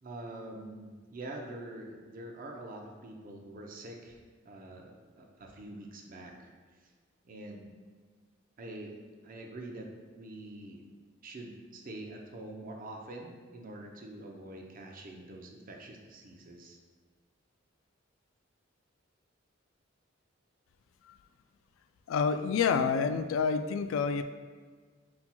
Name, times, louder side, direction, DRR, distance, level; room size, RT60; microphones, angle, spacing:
voice 1, 0.0-4.2 4.4-6.5 7.2-7.8 8.6-10.8 11.2-16.8, right 1 dB, 45° right, 2 dB, 0.6 m, -45 dB
voice 2, 22.1-24.2, left 6 dB, 80° left, 11 dB, 0.3 m, -28 dB
5.6 x 4.3 x 2.2 m, 1.5 s
head